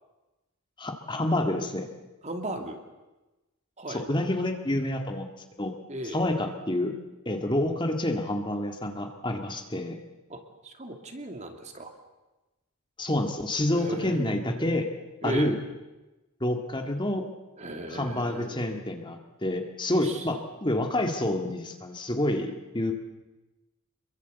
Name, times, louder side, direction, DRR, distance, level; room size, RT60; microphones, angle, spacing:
voice 1, 0.8-1.9 3.9-5.3 5.6-5.7 6.0-6.9 7.3-10.0 13.0-14.9 15.2-15.6 16.4-17.2 17.9-22.9, left 1 dB, 20° left, 4 dB, 2.0 m, -28 dB
voice 2, 2.2-2.8 3.8-4.1 5.9-6.3 10.3-11.9 13.7-14.8 15.2-15.6 17.6-18.8 20.0-20.2, right 1 dB, 30° right, 5 dB, 2.8 m, -37 dB
27.0 x 23.0 x 8.2 m, 1.1 s
head